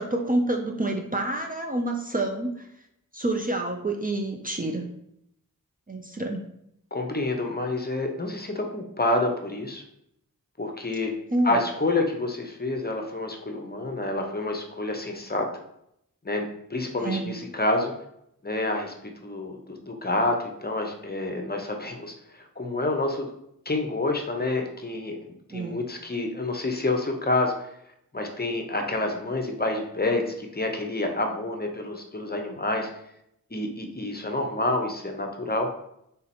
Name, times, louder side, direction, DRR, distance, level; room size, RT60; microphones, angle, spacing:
voice 1, 0.0-2.7 3.1-4.9 5.9-6.4 11.3-11.5 17.0-17.3 25.5-25.7, right 2 dB, 25° right, 2 dB, 0.5 m, -28 dB
voice 2, 6.9-9.8 10.6-11.1 11.4-15.5 16.2-17.9 18.4-23.3 23.7-27.7 28.1-32.9 33.5-35.7, left 2 dB, 30° left, 3 dB, 0.7 m, -28 dB
3.7 x 2.9 x 4.2 m, 0.76 s
wide cardioid pair, 55°, 35 cm